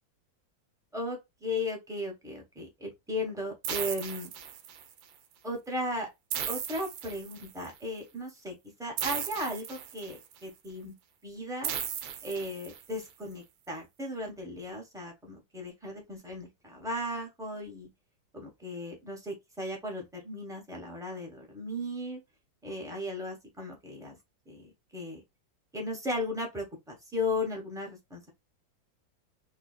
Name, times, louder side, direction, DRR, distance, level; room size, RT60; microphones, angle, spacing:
voice 1, 0.9-4.3 5.4-6.1 6.5-10.9 11.2-11.7 12.2-17.9 18.3-22.2 22.6-24.2 24.5-25.2 25.7-28.3, left 1 dB, 5° right, 0.4 m, -36 dB
sound 1, 3.6-5.0 6.3-7.7 9.0-10.3 11.6-13.0, right 8 dB, 90° right, 1.5 m, -36 dB
4.5 x 2.2 x 2.3 m
omnidirectional pair, 2.1 m